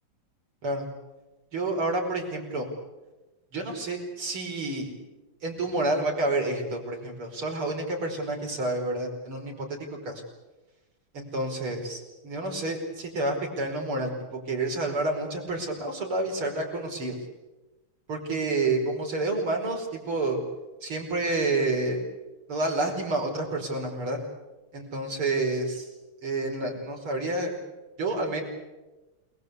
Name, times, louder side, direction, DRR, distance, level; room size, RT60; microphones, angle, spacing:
voice 1, 1.5-2.7 3.5-4.9 5.4-10.2 11.1-17.2 18.1-20.4 20.8-22.0 22.5-24.2 24.7-25.9 26.2-27.5 28.0-28.4, right 2 dB, 80° right, 1 dB, 5.9 m, -29 dB
28.5 x 20.0 x 8.3 m, 1.1 s
omnidirectional pair, 2.3 m